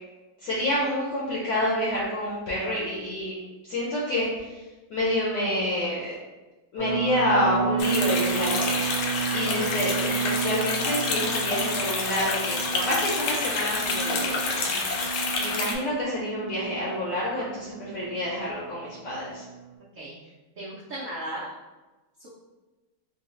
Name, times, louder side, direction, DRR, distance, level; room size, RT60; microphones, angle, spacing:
voice 1, 0.4-3.3 3.7-4.6 4.9-6.1 6.7-8.9 9.3-19.4, left 1 dB, 65° left, -6 dB, 1.3 m, -28 dB
sound 1, 6.8-19.7, right 6 dB, 30° right, 1.0 m, -32 dB
sound 2, 7.8-15.8, left 3 dB, 85° left, 1.4 m, -28 dB
voice 2, 20.6-21.5 22.2-22.3, right 1 dB, 85° right, -7 dB, 0.7 m, -36 dB
3.8 x 2.4 x 3.0 m, 1.2 s
omnidirectional pair, 2.2 m